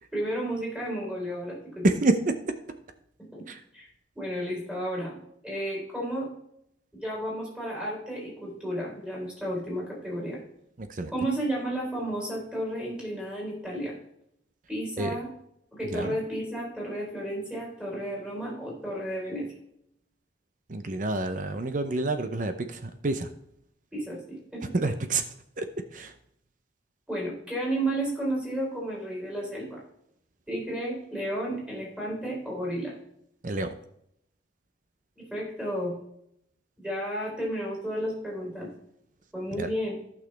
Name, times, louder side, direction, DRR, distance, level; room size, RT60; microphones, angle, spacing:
voice 1, 0.1-1.9 3.3-3.4 3.7-3.9 4.2-5.2 5.4-6.3 6.9-10.4 11.1-13.9 14.7-15.3 15.7-19.5 23.9-24.6 27.1-29.8 30.5-32.9 35.2-36.0 36.8-38.7 39.3-40.0, right 1 dB, 5° right, -4 dB, 4.1 m, -32 dB
voice 2, 1.8-2.3 3.5-3.6 10.8-11.1 15.0-15.2 15.9-16.2 20.7-23.3 24.7-25.2 25.6-25.7 25.9-26.1 33.4-33.7 39.5-39.7, right 2 dB, 45° right, 9 dB, 0.6 m, -28 dB
14.5 x 6.2 x 3.3 m, 0.75 s
head